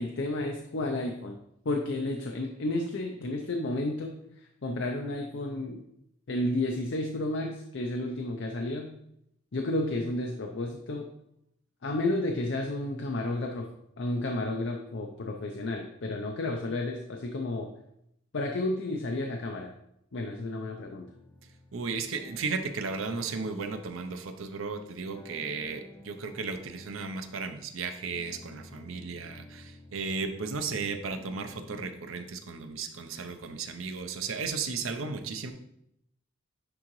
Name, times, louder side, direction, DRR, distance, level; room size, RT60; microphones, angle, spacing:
voice 1, 0.0-1.4 1.6-4.1 4.6-5.8 6.3-8.9 9.5-11.1 11.8-13.7 14.0-17.7 18.3-19.7 20.1-21.1, left 2 dB, 60° left, 2 dB, 0.6 m, -31 dB
sound 1, 20.9-31.9, left 2 dB, 10° left, 0.5 m, -52 dB
voice 2, 21.7-35.5, right 4 dB, 85° right, 8 dB, 0.7 m, -35 dB
9.8 x 3.8 x 3.1 m, 0.79 s
head